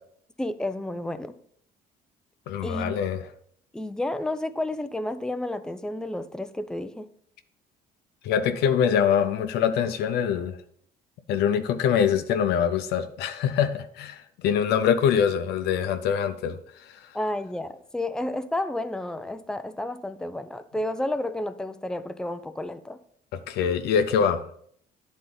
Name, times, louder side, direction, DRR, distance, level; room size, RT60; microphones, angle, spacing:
voice 1, 0.4-1.3 2.6-3.0 3.7-7.1 17.1-23.0, left 1 dB, 5° left, 11 dB, 0.4 m, -31 dB
voice 2, 2.5-3.2 8.2-10.6 11.3-16.6 23.5-24.4, left 8 dB, 80° left, 9 dB, 0.6 m, -24 dB
9.4 x 4.1 x 3.9 m, 0.64 s
cardioid pair, 110°, 17 cm